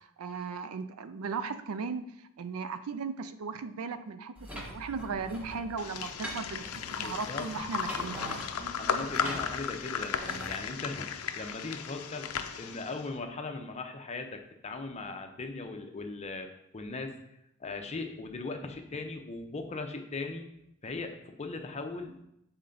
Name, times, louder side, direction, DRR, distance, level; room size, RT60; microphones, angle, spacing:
voice 1, 0.2-6.6 7.0-8.2, right 5 dB, 80° right, 12 dB, 0.4 m, -37 dB
sound 1, 4.4-10.6, equal, 5° right, 1.1 m, -43 dB
sound 2, 5.8-13.1, left 7 dB, 80° left, 0.5 m, -35 dB
voice 2, 7.0-7.5 8.5-16.5 16.7-17.2 17.6-20.5 20.8-22.2, left 3 dB, 30° left, 5 dB, 0.6 m, -39 dB
7.0 x 4.3 x 3.8 m, 0.79 s
head